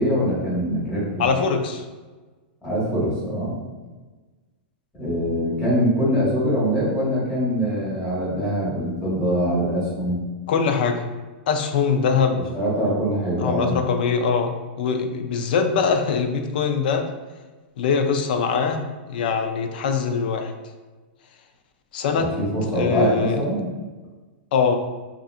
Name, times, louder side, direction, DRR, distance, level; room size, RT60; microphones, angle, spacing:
voice 1, 0.0-1.3 2.6-3.6 5.0-10.3 12.3-13.8 22.1-23.7, equal, 15° left, -7 dB, 0.9 m, -23 dB
voice 2, 1.2-1.8 10.5-11.0 11.5-12.4 13.4-17.0 17.8-20.5 21.9-22.3 22.8-23.4 24.5-24.8, left 5 dB, 60° left, 6 dB, 0.3 m, -22 dB
2.7 x 2.4 x 2.4 m, 1.3 s
supercardioid pair, 170°, 6 cm